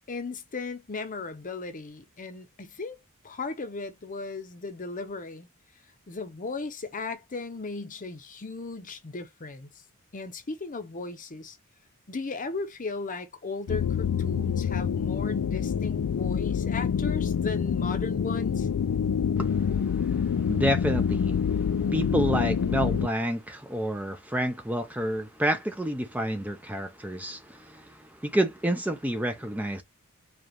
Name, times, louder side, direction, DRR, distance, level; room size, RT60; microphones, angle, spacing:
voice 1, 0.1-3.0 3.2-5.5 6.1-9.7 10.1-11.6 12.1-18.7, left 3 dB, 35° left, 0.8 m, -36 dB
sound 1, 13.7-23.1, left 7 dB, 70° left, 0.3 m, -26 dB
voice 2, 20.0-29.8, right 1 dB, 5° right, 0.5 m, -29 dB
4.9 x 2.4 x 2.9 m
head